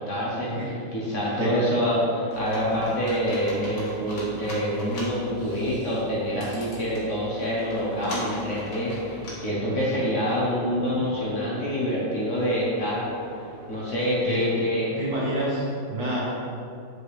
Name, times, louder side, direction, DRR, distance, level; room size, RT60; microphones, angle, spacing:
voice 1, 0.0-13.1 13.7-15.0, equal, 50° left, -5 dB, 1.3 m, -26 dB
Computer keyboard, 2.3-9.3, equal, 80° left, 2.1 m, -39 dB
sound 1, 4.0-14.2, right 4 dB, 35° right, 1.6 m, -46 dB
voice 2, 15.0-16.2, right 1 dB, 60° right, -6 dB, 2.0 m, -28 dB
7.5 x 4.7 x 3.4 m, 2.5 s
omnidirectional pair, 1.9 m